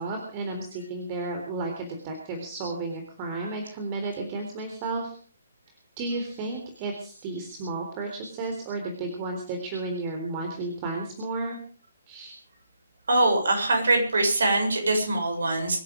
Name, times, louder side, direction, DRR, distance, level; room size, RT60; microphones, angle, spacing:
voice 1, 0.0-5.2 6.0-11.6 12.1-12.3, right 3 dB, 25° right, 3 dB, 3.7 m, -33 dB
voice 2, 13.1-15.8, right 2 dB, 60° right, 4 dB, 7.2 m, -23 dB
24.5 x 11.0 x 5.2 m, 0.42 s
figure-of-eight pair, 135°, 0 cm